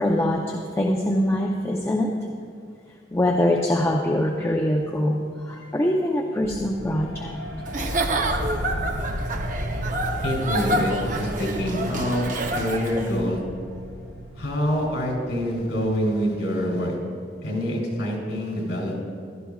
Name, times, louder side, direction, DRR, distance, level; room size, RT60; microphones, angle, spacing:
voice 1, 0.0-2.1 3.1-7.4, left 1 dB, 15° left, -1 dB, 0.6 m, -23 dB
sound 1, 6.4-16.6, equal, 85° right, 1.4 m, -34 dB
Giggle / Chuckle chortle, 7.7-13.2, right 2 dB, 45° right, 0.8 m, -28 dB
voice 2, 10.2-13.4 14.4-16.9 17.4-19.0, equal, 75° left, -1 dB, 3.2 m, -26 dB
16.0 x 12.5 x 2.4 m, 2.2 s
head